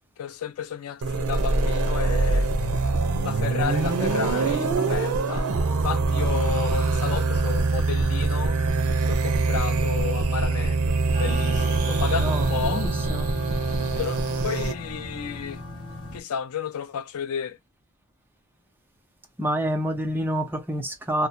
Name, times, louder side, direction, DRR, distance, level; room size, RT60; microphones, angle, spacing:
voice 1, 0.2-2.5 3.2-8.6 9.1-12.8 14.0-15.6 16.1-17.6, left 7 dB, 85° left, 0.5 m, -32 dB
sound 1, 1.0-14.7, right 3 dB, 80° right, 0.6 m, -24 dB
sound 2, 11.1-16.2, left 1 dB, 60° left, 1.1 m, -36 dB
voice 2, 12.1-13.3 19.4-21.3, equal, 10° right, 0.5 m, -28 dB
2.9 x 2.1 x 2.5 m
head